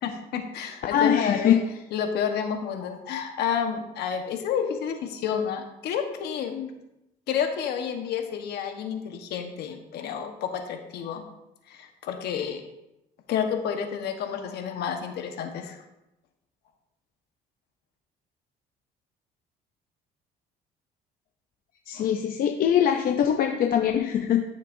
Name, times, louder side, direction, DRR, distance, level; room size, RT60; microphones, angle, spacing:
voice 1, 0.0-1.6 1.9-6.7 7.3-11.2 11.7-12.6 13.3-15.8, left 7 dB, 75° left, 5 dB, 1.3 m, -30 dB
voice 2, 0.9-1.6 21.9-24.4, left 9 dB, 60° left, 5 dB, 0.6 m, -22 dB
14.0 x 6.6 x 2.7 m, 0.91 s
cardioid pair, 110°, 17 cm